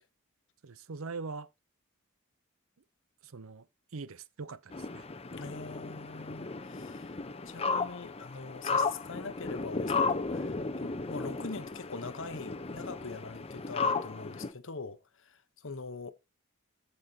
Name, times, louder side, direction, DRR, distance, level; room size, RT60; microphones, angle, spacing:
voice 1, 0.6-1.5 3.2-3.7 3.9-5.1, right 4 dB, 75° right, 0.7 m, -42 dB
sound 1, 4.7-14.5, left 4 dB, 30° left, 0.8 m, -34 dB
voice 2, 5.3-7.2 7.5-16.1, left 4 dB, 65° left, 1.0 m, -43 dB
14.5 x 5.5 x 2.8 m
head